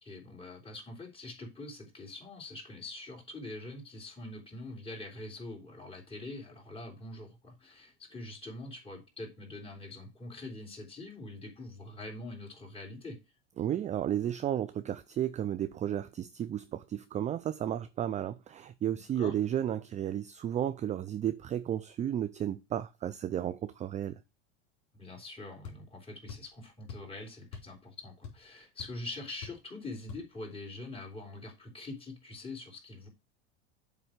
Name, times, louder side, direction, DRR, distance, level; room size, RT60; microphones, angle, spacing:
voice 1, 0.0-13.2 18.9-19.3 24.9-33.1, left 2 dB, 15° left, 3.3 m, -44 dB
voice 2, 13.6-24.2, right 10 dB, 20° right, 0.4 m, -33 dB
sound 1, 25.6-25.8 26.3-26.5 26.9-27.1 27.5-27.8 28.0-28.5 28.8-28.9 29.4-29.7 30.1-30.3, left 6 dB, 55° left, 4.0 m, -44 dB
7.8 x 3.4 x 6.5 m
supercardioid pair, 110°, 33 cm